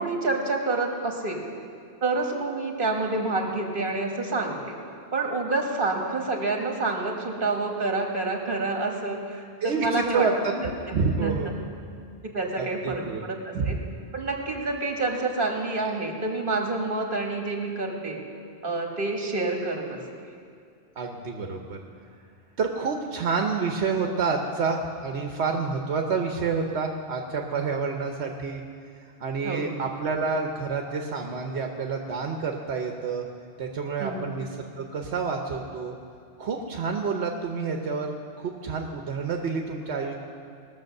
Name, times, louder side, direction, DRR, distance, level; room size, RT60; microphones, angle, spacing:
voice 1, 0.0-1.4 2.0-4.8 5.1-10.3 11.2-11.5 12.2-13.8 14.1-18.2 18.6-20.0 29.4-29.7 34.0-34.3, right 3 dB, 55° right, 2 dB, 1.8 m, -28 dB
voice 2, 9.6-11.7 12.6-13.2 13.5-13.7 21.0-21.8 22.6-28.6 29.2-33.2 33.6-34.5 34.8-35.9 36.4-40.1, right 4 dB, 80° right, 2 dB, 1.2 m, -28 dB
19.5 x 7.0 x 6.5 m, 2.4 s
omnidirectional pair, 1.1 m